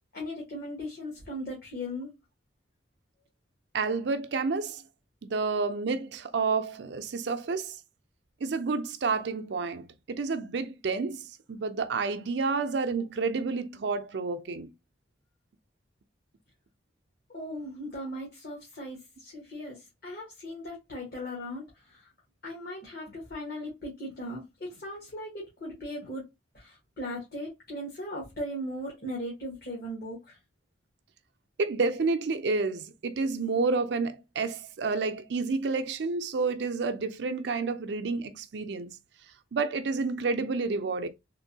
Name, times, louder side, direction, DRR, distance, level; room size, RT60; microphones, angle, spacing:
voice 1, 0.1-2.1 17.3-21.6 21.9-22.1 22.4-26.2 26.5-30.4, equal, 60° left, 1.3 m, -38 dB
voice 2, 3.7-4.8 5.2-7.8 8.4-14.7 31.6-39.0 39.5-41.1, right 4 dB, 75° right, 0.5 m, -30 dB
3.6 x 2.6 x 2.7 m
head